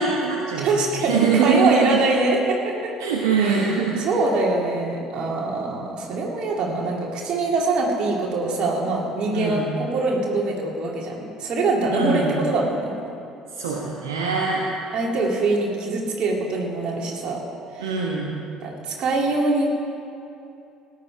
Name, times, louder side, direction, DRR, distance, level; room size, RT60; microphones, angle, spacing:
voice 1, 0.0-0.7 1.0-2.1 3.0-4.1 9.3-9.7 11.9-12.3 13.5-14.6 17.8-18.3, right 5 dB, 70° right, -2 dB, 1.2 m, -22 dB
voice 2, 0.6-2.9 3.4-13.0 14.9-17.4 17.7-18.0 18.6-19.7, right 2 dB, 45° right, -1 dB, 2.6 m, -24 dB
17.5 x 10.5 x 4.8 m, 2.7 s
figure-of-eight pair, 55°, 2 cm